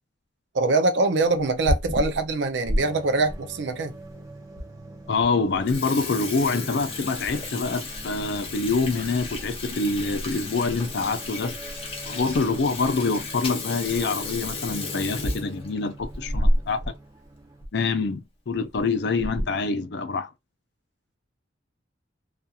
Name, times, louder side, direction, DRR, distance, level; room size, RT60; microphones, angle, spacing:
voice 1, 0.5-3.9, right 3 dB, 70° right, 0.5 m, -23 dB
Water tap faucet / Sink (filling or washing), 1.4-2.8 3.3-3.4 4.1-4.2 4.6-4.7 5.0-5.2 5.5-16.9 17.2-17.3 17.6-17.7 18.5-18.8 19.2-19.6, left 1 dB, 30° left, 0.7 m, -31 dB
sound 1, 2.7-17.6, right 2 dB, 20° right, 0.5 m, -44 dB
voice 2, 5.1-11.6 12.1-16.9 17.7-20.3, left 4 dB, 60° left, 0.4 m, -26 dB
2.7 x 2.4 x 2.3 m
head